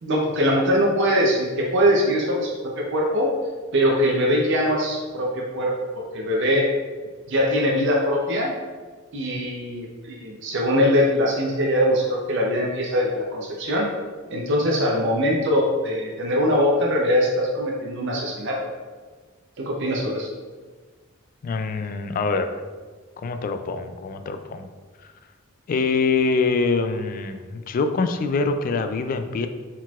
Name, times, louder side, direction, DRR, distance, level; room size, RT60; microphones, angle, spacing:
voice 1, 0.0-3.3 3.7-6.7 7.3-8.5 9.1-13.9 14.3-18.6 19.6-20.3, equal, 60° right, -2 dB, 0.6 m, -22 dB
voice 2, 21.4-22.6 23.2-24.7 25.7-29.5, left 4 dB, 45° left, 8 dB, 0.3 m, -24 dB
4.2 x 4.0 x 2.4 m, 1.4 s
head